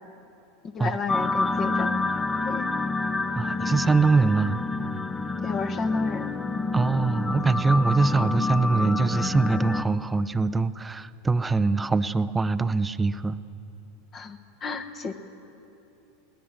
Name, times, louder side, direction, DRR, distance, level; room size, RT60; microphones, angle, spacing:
voice 1, 0.6-2.0 2.4-2.7 5.4-6.3 14.1-15.1, left 5 dB, 30° left, 9 dB, 1.4 m, -32 dB
sound 1, 1.1-9.8, left 3 dB, 15° left, 0.8 m, -28 dB
voice 2, 3.4-4.6 6.7-13.4, right 3 dB, 15° right, 14 dB, 0.6 m, -23 dB
22.0 x 18.5 x 7.5 m, 2.9 s
figure-of-eight pair, 85°, 0 cm